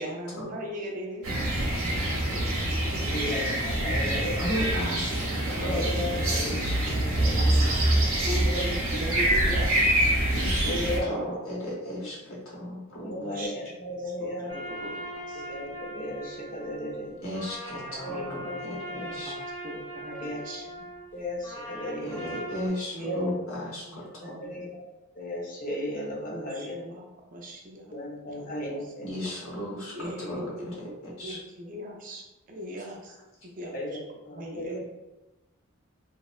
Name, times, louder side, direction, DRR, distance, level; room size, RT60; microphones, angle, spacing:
voice 1, 0.0-3.8 7.3-9.7 10.6-11.4 13.2-13.6 14.0-15.8 17.7-19.4 19.6-20.8 22.9-23.5 23.8-24.8 26.3-28.0 28.3-28.9 29.9-33.2 33.4-34.0 34.3-34.9, equal, 40° right, 0 dB, 0.5 m, -40 dB
sound 1, 1.2-11.0, right 1 dB, 85° right, 0.7 m, -25 dB
voice 2, 3.1-4.7 5.5-7.7 8.5-8.7 10.6-11.4 11.9-12.0 13.0-14.5 15.5-17.2 18.0-18.6 19.0-19.1 20.2-20.4 21.1-22.2 23.1-23.3 24.2-24.9 25.2-26.7 27.9-29.1 33.7-34.0 34.3-34.9, left 1 dB, 40° left, -1 dB, 0.5 m, -35 dB
voice 3, 4.4-6.8 10.3-11.2 11.5-13.2 17.2-18.4 18.7-19.3 22.0-23.8 29.0-29.9 30.3-30.5 31.2-31.4, left 1 dB, 80° left, -5 dB, 0.9 m, -35 dB
sound 2, 14.5-22.7, equal, 10° left, 0.8 m, -40 dB
2.7 x 2.1 x 2.4 m, 1.0 s
head